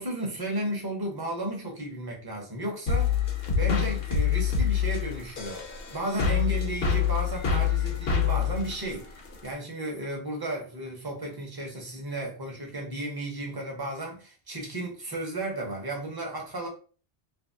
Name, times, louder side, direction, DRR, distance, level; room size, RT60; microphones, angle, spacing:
voice 1, 0.0-3.1 3.5-5.6 5.9-16.7, right 1 dB, 25° right, 0.7 m, -34 dB
sound 1, 2.9-9.5, left 7 dB, 65° left, 0.9 m, -26 dB
2.8 x 2.5 x 2.6 m
omnidirectional pair, 1.1 m